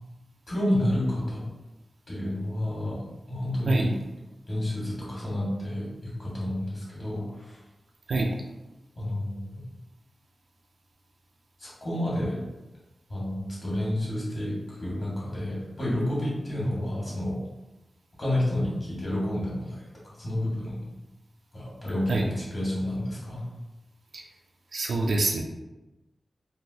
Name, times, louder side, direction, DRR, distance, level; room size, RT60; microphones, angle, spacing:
voice 1, 0.5-1.5 2.1-3.0 3.3-4.0 4.5-7.6 9.0-9.6 11.6-12.4 13.1-17.4 18.2-21.0 21.5-23.4, left 1 dB, 45° left, -5 dB, 1.4 m, -30 dB
voice 2, 24.7-25.4, right 3 dB, 85° right, 0 dB, 0.4 m, -25 dB
3.3 x 2.5 x 2.7 m, 1.0 s
wide cardioid pair, 100°, 0 cm